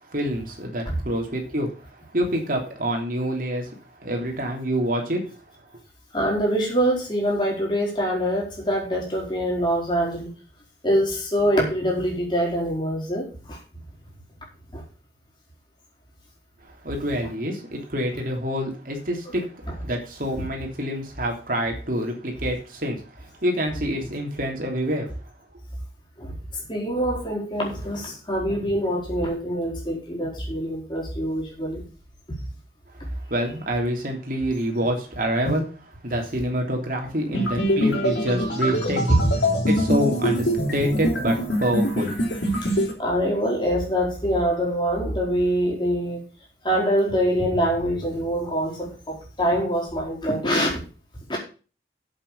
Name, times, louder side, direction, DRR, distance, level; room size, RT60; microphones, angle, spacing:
voice 1, 0.1-5.2 16.8-19.4 19.8-25.1 33.1-35.6 36.0-39.2 39.7-42.2, equal, 50° right, 2 dB, 3.2 m, -27 dB
voice 2, 6.1-10.3 10.8-13.6 14.7-14.8 26.2-26.3 26.7-31.8 39.1-39.3 42.6-42.7 43.0-46.2 46.6-50.7 51.3-51.4, equal, 25° left, -2 dB, 4.5 m, -24 dB
sound 1, 37.3-42.9, equal, 85° left, 4.3 m, -23 dB
8.4 x 7.7 x 6.7 m, 0.36 s
head